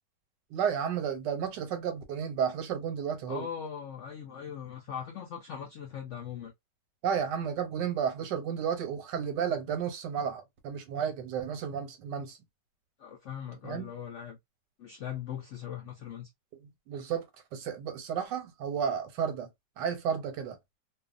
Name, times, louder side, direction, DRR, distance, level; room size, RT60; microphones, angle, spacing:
voice 1, 0.5-3.5 7.0-12.4 13.6-13.9 16.9-19.5 19.8-20.6, right 7 dB, 80° right, 1.3 m, -32 dB
voice 2, 3.3-6.5 13.0-14.4 14.8-16.3, left 8 dB, 75° left, 0.6 m, -40 dB
2.7 x 2.3 x 2.4 m
omnidirectional pair, 1.9 m